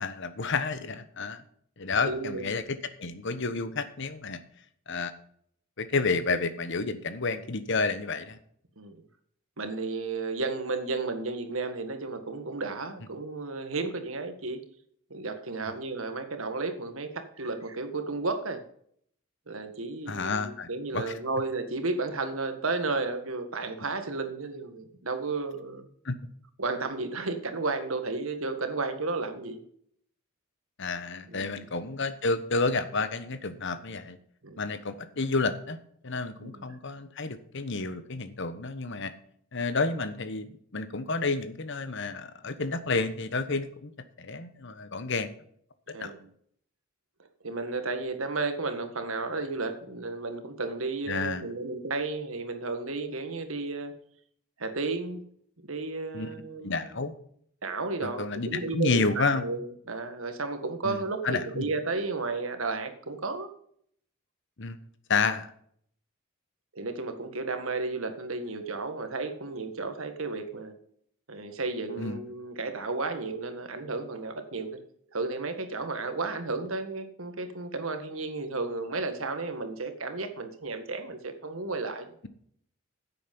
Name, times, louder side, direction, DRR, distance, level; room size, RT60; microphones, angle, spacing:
voice 1, 0.0-1.4 1.8-4.4 4.9-5.1 5.8-8.4 15.7-15.8 20.1-21.0 26.0-26.1 30.8-34.2 34.6-35.8 36.0-39.1 39.5-40.5 40.7-43.9 44.2-45.3 46.0-46.1 51.1-51.4 56.1-56.3 56.6-57.1 58.0-59.4 60.8-61.7 64.6-64.8 65.1-65.5 72.0-72.2, left 3 dB, 60° left, 11 dB, 1.2 m, -30 dB
voice 2, 2.1-2.5 8.8-9.0 9.6-14.6 15.1-18.6 19.5-25.9 26.6-29.6 31.3-31.7 34.4-34.6 36.4-36.7 45.9-46.3 47.4-54.0 54.6-55.2 55.7-57.1 57.6-63.5 66.7-70.7 71.3-74.8 75.1-82.1, right 3 dB, 85° right, 7 dB, 1.8 m, -33 dB
10.5 x 8.4 x 5.5 m, 0.64 s
head